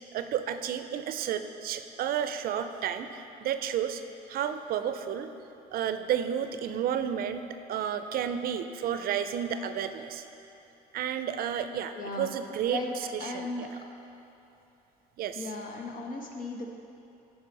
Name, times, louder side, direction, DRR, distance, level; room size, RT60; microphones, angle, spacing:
voice 1, 0.1-4.0 4.3-5.3 5.7-10.2 10.9-13.7 15.2-15.5, right 9 dB, 60° right, 9 dB, 0.5 m, -32 dB
voice 2, 11.9-12.3 12.7-12.9 13.2-13.7 15.3-16.7, left 2 dB, 55° left, 2 dB, 1.2 m, -36 dB
11.0 x 4.9 x 5.3 m, 2.8 s
cardioid pair, 110°, 17 cm